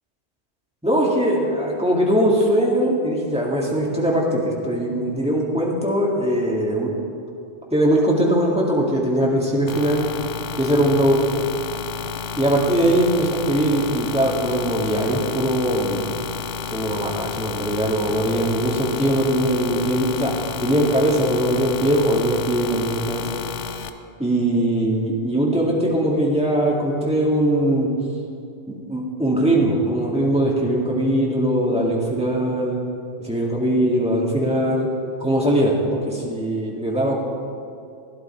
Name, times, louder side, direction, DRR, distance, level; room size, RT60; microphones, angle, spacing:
voice 1, 0.8-6.9 7.7-10.1 10.6-11.3 12.4-16.2 16.7-23.3 24.2-27.9 28.7-32.8 33.2-34.9 35.2-37.1, right 1 dB, 5° right, -4 dB, 2.1 m, -21 dB
sound 1, 9.7-23.9, left 7 dB, 75° left, 1.0 m, -31 dB
16.0 x 11.0 x 4.5 m, 2.6 s
omnidirectional pair, 1.3 m